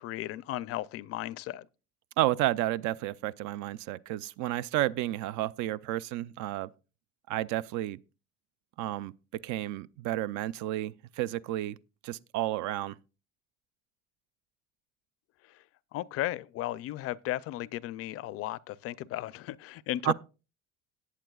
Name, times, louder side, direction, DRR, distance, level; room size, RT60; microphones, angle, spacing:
voice 1, 0.0-1.7 15.4-15.6 15.9-20.1, left 14 dB, 55° left, 0.4 m, -35 dB
voice 2, 2.2-6.7 7.3-8.0 8.8-11.8 12.0-13.0 20.0-20.1, right 15 dB, 75° right, 0.4 m, -31 dB
18.5 x 8.5 x 2.3 m
cardioid pair, 170°, 29 cm